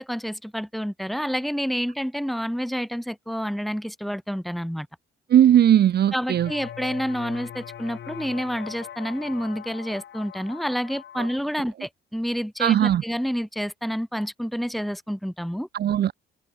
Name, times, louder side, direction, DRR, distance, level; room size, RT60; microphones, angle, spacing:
voice 1, 0.0-4.9 6.1-15.7, equal, ahead, 5.2 m, -29 dB
voice 2, 5.3-6.5 11.1-11.3 12.6-13.0 15.7-16.1, right 10 dB, 55° right, 0.7 m, -18 dB
sound 1, 6.3-11.4, left 9 dB, 65° left, 6.8 m, -40 dB
cardioid pair, 90°, 20 cm